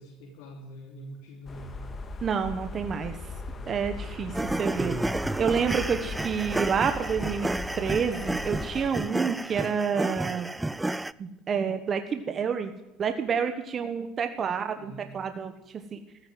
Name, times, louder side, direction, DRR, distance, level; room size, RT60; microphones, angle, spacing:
voice 1, 0.0-1.8 14.7-15.1, right 1 dB, 85° left, 0 dB, 3.2 m, -44 dB
sound 1, 1.5-8.9, left 3 dB, 30° left, 1.8 m, -38 dB
voice 2, 2.2-3.3 3.7-5.0 5.4-7.5 7.8-10.5 11.2-12.7 13.0-16.0, right 6 dB, 35° right, 7 dB, 1.2 m, -29 dB
sound 2, 4.3-11.1, right 2 dB, 10° right, 0.5 m, -31 dB
15.5 x 9.6 x 9.4 m, 1.0 s
cardioid pair, 120°, 0 cm